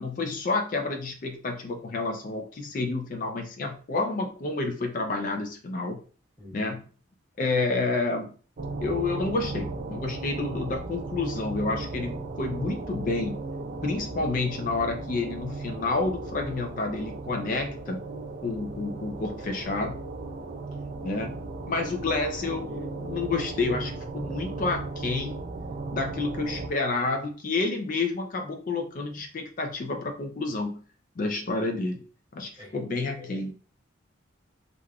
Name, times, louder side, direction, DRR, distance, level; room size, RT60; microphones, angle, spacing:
voice 1, 0.0-6.0 6.5-6.8 7.4-8.3 8.8-13.4 13.8-18.0 18.4-20.0 21.0-25.4 25.9-30.8 31.2-32.0 32.3-33.5, left 3 dB, 45° left, 0.4 m, -29 dB
voice 2, 6.4-6.8 22.0-22.3 32.6-32.8, left 1 dB, 20° right, 1.0 m, -46 dB
sound 1, 8.6-26.7, right 3 dB, 50° right, 0.4 m, -36 dB
3.3 x 2.4 x 2.3 m
head